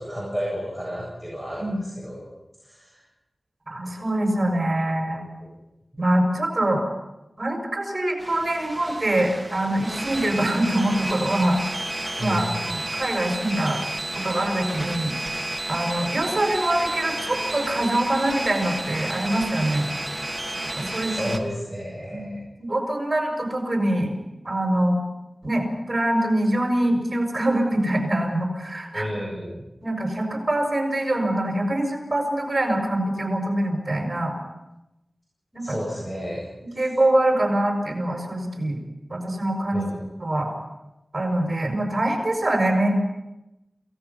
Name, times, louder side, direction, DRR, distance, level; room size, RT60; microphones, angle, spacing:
voice 1, 0.0-2.3 2.6-3.0 12.2-12.6 21.0-22.4 28.9-29.6 35.6-36.5 36.7-36.9 39.7-40.0, equal, 10° left, -4 dB, 7.8 m, -32 dB
voice 2, 3.7-5.2 6.0-6.8 7.4-11.6 12.2-13.8 14.2-15.1 15.7-19.9 20.8-21.3 22.1-24.1 24.4-25.0 25.4-29.1 29.8-34.3 35.5-35.6 36.6-38.8 39.1-39.8 40.2-40.5 41.1-42.9, right 1 dB, 40° right, 2 dB, 6.3 m, -24 dB
sound 1, 8.2-21.4, right 1 dB, 10° right, 2.5 m, -31 dB
28.5 x 18.0 x 5.9 m, 0.95 s
wide cardioid pair, 75°, 0 cm